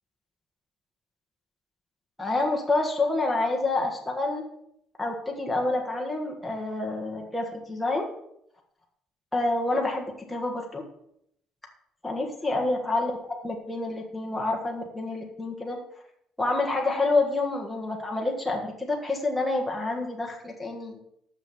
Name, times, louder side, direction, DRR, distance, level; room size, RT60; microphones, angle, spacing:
voice 1, 2.2-4.4 5.0-8.1 9.3-10.8 12.0-15.8 16.4-21.0, left 2 dB, 5° left, -1 dB, 1.4 m, -28 dB
6.6 x 6.2 x 7.0 m, 0.74 s
cardioid pair, 135°, 0 cm